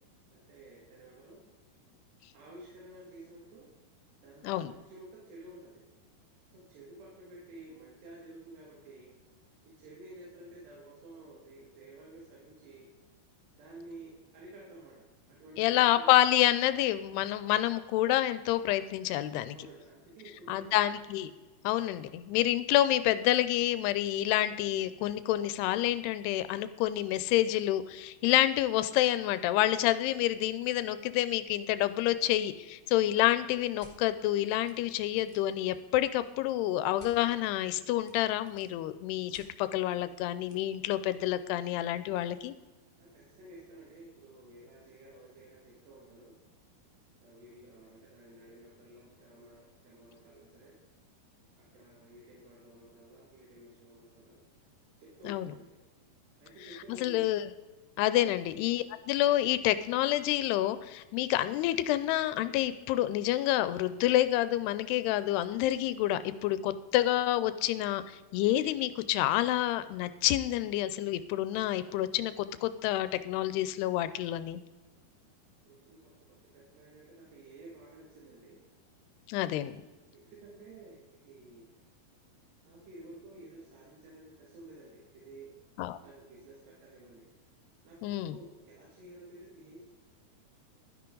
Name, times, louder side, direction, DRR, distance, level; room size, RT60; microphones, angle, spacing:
voice 1, 0.3-1.4 2.3-3.6 4.2-5.7 6.5-9.1 9.8-12.9 13.6-16.1 19.5-21.0 43.0-46.3 47.2-50.7 51.7-54.4 55.0-55.6 56.4-57.2 75.6-76.0 76.5-78.6 80.1-81.0 81.2-81.6 82.7-85.5 86.0-87.2 87.8-89.8, right 2 dB, 85° right, -4 dB, 4.2 m, -52 dB
voice 2, 15.6-19.6 20.5-21.3 21.6-42.5 55.3-55.5 57.0-57.4 58.0-74.6 79.3-79.7 85.8-86.0 88.0-88.4, left 14 dB, 85° left, 13 dB, 2.6 m, -28 dB
sound 1, 33.8-34.0 34.6-34.7 35.0-35.5 37.0-37.1 38.0-38.8 39.3-39.5 40.5-40.6, left 2 dB, 50° left, 0.6 m, -55 dB
12.5 x 10.5 x 3.8 m, 1.2 s
omnidirectional pair, 4.7 m